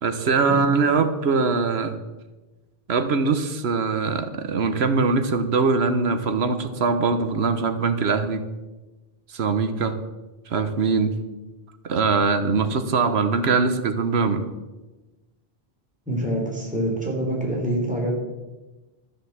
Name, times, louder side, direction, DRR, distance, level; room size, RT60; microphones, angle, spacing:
voice 1, 0.0-1.9 2.9-8.4 9.3-10.0 10.5-11.2 11.8-14.4, right 4 dB, 85° right, 9 dB, 1.3 m, -22 dB
voice 2, 16.1-18.1, right 1 dB, 5° right, -2 dB, 3.4 m, -25 dB
13.0 x 7.2 x 7.2 m, 1.1 s
omnidirectional pair, 1.0 m